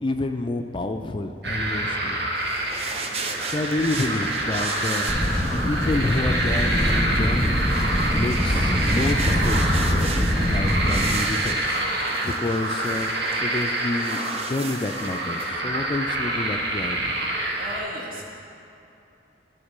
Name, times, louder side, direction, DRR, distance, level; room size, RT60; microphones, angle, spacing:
voice 1, 0.0-2.2 3.4-5.1 5.5-7.6 8.1-11.8 12.2-13.1 13.4-17.1, left 2 dB, 30° left, 5 dB, 0.3 m, -29 dB
sound 1, 1.4-17.8, right 1 dB, 75° right, 1.4 m, -27 dB
sound 2, 2.4-15.5, right 4 dB, 35° right, 0.5 m, -36 dB
sound 3, 5.1-11.1, equal, ahead, 1.4 m, -23 dB
voice 2, 17.6-18.4, equal, 55° right, -3 dB, 1.6 m, -36 dB
11.5 x 4.4 x 6.5 m, 2.8 s
head